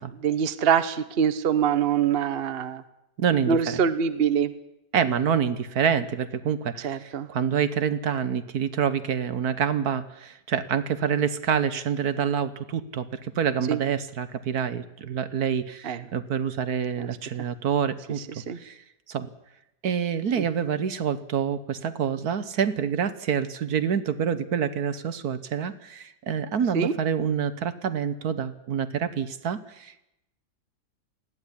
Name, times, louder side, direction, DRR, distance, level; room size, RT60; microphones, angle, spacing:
voice 1, 0.2-2.8 3.5-4.5 6.8-7.3 13.7-13.8 15.8-16.0 17.0-17.1 18.4-18.6 20.4-20.5 26.7-26.9, right 7 dB, 40° right, 12 dB, 1.1 m, -24 dB
voice 2, 3.2-3.8 4.9-18.8 19.1-19.3 19.8-30.1, right 7 dB, 65° right, 14 dB, 1.5 m, -27 dB
20.0 x 15.5 x 10.0 m, 0.85 s
omnidirectional pair, 1.8 m